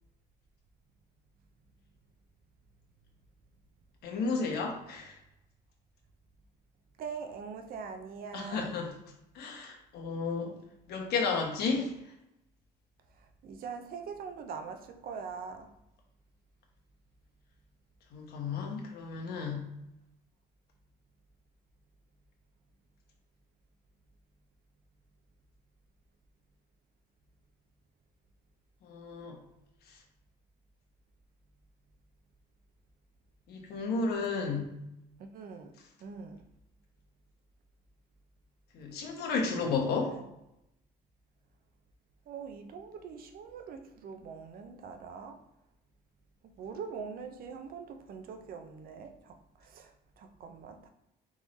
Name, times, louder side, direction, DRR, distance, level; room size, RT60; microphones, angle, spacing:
voice 1, 4.0-5.1 8.3-8.9 9.3-10.5 10.9-11.9 18.1-19.6 28.8-29.4 33.5-34.7 38.7-40.1, left 4 dB, 70° left, 1 dB, 1.1 m, -32 dB
voice 2, 7.0-8.7 13.4-15.7 35.2-35.7 36.0-36.5 39.4-40.2 42.3-45.4 46.6-50.9, right 6 dB, 60° right, 7 dB, 0.6 m, -43 dB
3.6 x 3.1 x 4.0 m, 0.86 s
cardioid pair, 110°, 17 cm